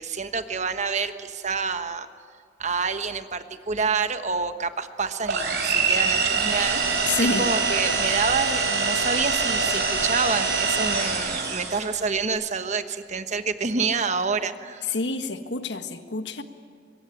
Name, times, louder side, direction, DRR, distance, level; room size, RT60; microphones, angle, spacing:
voice 1, 0.0-2.1 2.6-14.8, right 4 dB, 40° right, 9 dB, 1.3 m, -28 dB
sound 1, 5.3-12.0, right 4 dB, 60° right, 6.0 m, -24 dB
voice 2, 7.1-7.4 14.9-16.4, left 3 dB, 65° left, 8 dB, 1.7 m, -27 dB
24.5 x 22.5 x 10.0 m, 2.3 s
head